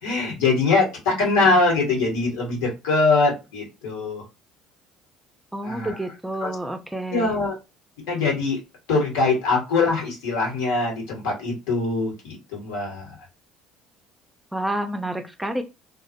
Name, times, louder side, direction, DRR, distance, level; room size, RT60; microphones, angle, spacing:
voice 1, 0.0-4.2 5.6-5.9 6.4-6.5 7.1-7.5 8.1-8.6 8.9-13.1, left 3 dB, 75° left, -2 dB, 1.1 m, -22 dB
voice 2, 5.5-7.3 14.5-15.6, right 1 dB, 10° right, 6 dB, 0.5 m, -29 dB
2.2 x 2.0 x 2.7 m, 0.26 s
hypercardioid pair, 60°, 0 cm